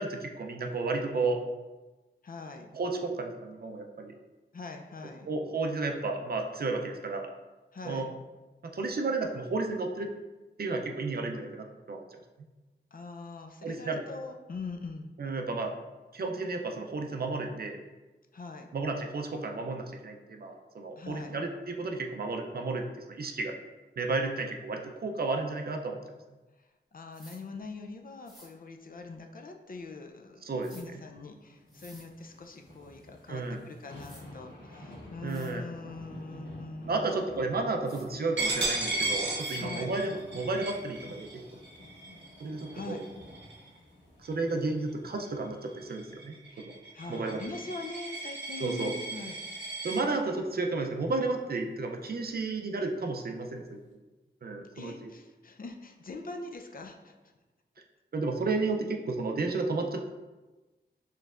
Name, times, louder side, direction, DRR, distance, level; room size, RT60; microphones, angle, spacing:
voice 1, 0.0-1.4 2.7-4.1 5.2-7.3 7.8-8.1 8.6-10.1 10.6-12.0 13.6-14.0 15.2-15.7 16.1-17.8 18.7-23.5 24.0-26.0 30.4-31.0 33.3-33.7 35.2-35.6 36.9-41.4 42.4-43.0 44.2-46.7 47.1-47.4 48.6-48.9 49.8-53.8 54.4-55.1 58.1-60.1, right 3 dB, 55° right, 3 dB, 0.5 m, -32 dB
voice 2, 2.2-2.7 4.5-5.3 7.7-8.1 12.9-15.1 18.3-18.7 21.0-21.4 26.9-37.1 39.5-39.9 42.7-43.0 46.5-49.4 54.7-57.1, left 3 dB, 50° left, 4 dB, 0.4 m, -43 dB
sound 1, 27.1-27.4 28.2-28.5 30.6-30.8 31.7-32.1 33.5-33.6 34.0-34.2 34.9-35.0 35.3-35.5 37.8-38.1 39.4-39.6, equal, ahead, 1.0 m, -54 dB
sound 2, 31.6-46.0 46.5-46.6, left 1 dB, 85° left, 1.1 m, -51 dB
Coin (dropping), 38.4-43.8 44.2-44.5 44.9-50.0, right 2 dB, 80° right, 0.9 m, -35 dB
4.4 x 3.2 x 2.4 m, 1.2 s
wide cardioid pair, 65°, 18 cm